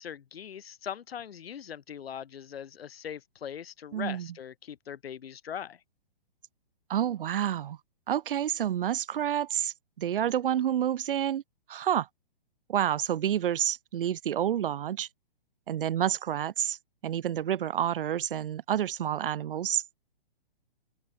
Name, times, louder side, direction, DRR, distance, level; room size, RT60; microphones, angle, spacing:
voice 1, 0.0-5.8, left 8 dB, 75° left, 1.1 m, -41 dB
voice 2, 3.9-4.3 6.9-7.8 8.1-11.4 11.7-12.1 12.7-15.1 15.7-16.8 17.0-20.0, right 10 dB, 60° right, 0.9 m, -29 dB
hypercardioid pair, 140°, 30 cm